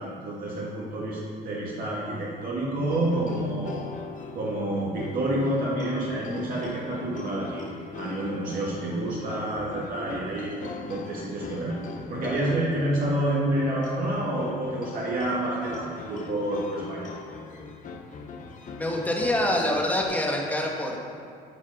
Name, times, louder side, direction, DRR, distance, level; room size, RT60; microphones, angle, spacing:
voice 1, 0.0-3.9 4.3-7.6 7.9-11.8 12.1-17.1, right 1 dB, 60° right, -6 dB, 1.7 m, -28 dB
sound 1, 2.9-20.0, left 4 dB, 50° left, 0.8 m, -40 dB
voice 2, 18.7-21.1, left 1 dB, 10° left, -1 dB, 1.4 m, -26 dB
9.1 x 4.9 x 5.5 m, 2.4 s
cardioid pair, 110°, 17 cm